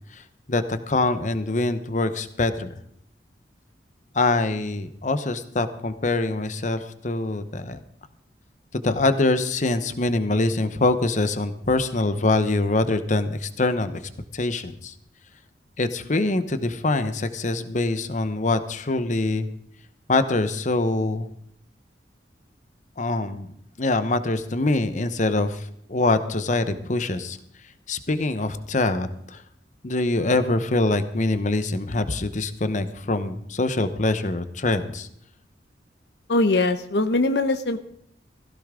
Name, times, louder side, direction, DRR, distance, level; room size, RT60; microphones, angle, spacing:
voice 1, 0.5-2.7 4.1-7.8 8.7-14.0 14.3-14.9 15.8-19.5 20.1-21.3 23.0-23.5 23.8-27.4 27.9-29.4 29.8-35.1, left 2 dB, 45° left, 11 dB, 0.9 m, -24 dB
voice 2, 36.3-37.8, left 2 dB, 70° left, 10 dB, 0.8 m, -21 dB
17.0 x 15.5 x 3.7 m, 0.72 s
head